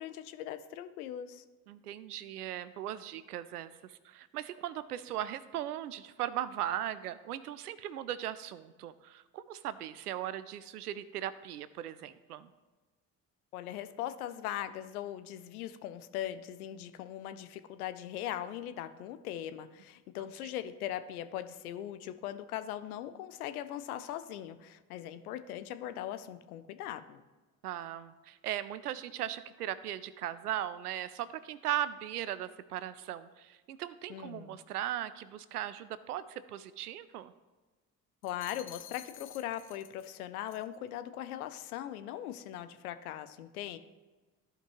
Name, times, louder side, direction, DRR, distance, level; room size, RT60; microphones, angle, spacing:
voice 1, 0.0-1.4 13.5-27.2 34.1-34.6 38.2-43.8, left 11 dB, 70° left, 11 dB, 0.7 m, -40 dB
voice 2, 1.7-12.5 27.6-37.3, right 12 dB, 80° right, 15 dB, 0.5 m, -38 dB
sound 1, 38.2-40.2 40.5-40.8, left 10 dB, 30° left, 0.6 m, -51 dB
14.0 x 5.2 x 3.0 m, 1.2 s
figure-of-eight pair, 50°, 45 cm